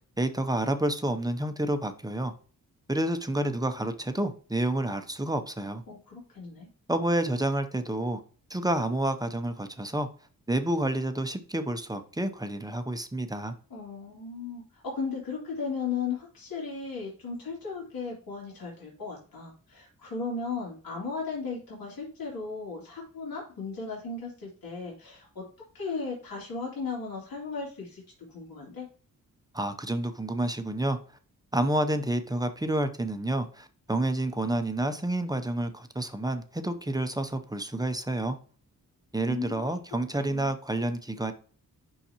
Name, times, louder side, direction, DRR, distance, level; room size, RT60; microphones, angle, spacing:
voice 1, 0.2-2.3 2.9-5.8 6.9-8.2 8.5-10.1 10.5-13.5 29.5-31.0 31.5-38.4 39.1-41.3, right 1 dB, 10° right, 0.6 m, -29 dB
voice 2, 5.9-6.7 13.7-28.9 39.1-39.7 40.2-40.5, left 4 dB, 75° left, 2.8 m, -36 dB
8.2 x 5.7 x 2.9 m
wide cardioid pair, 135°, 36 cm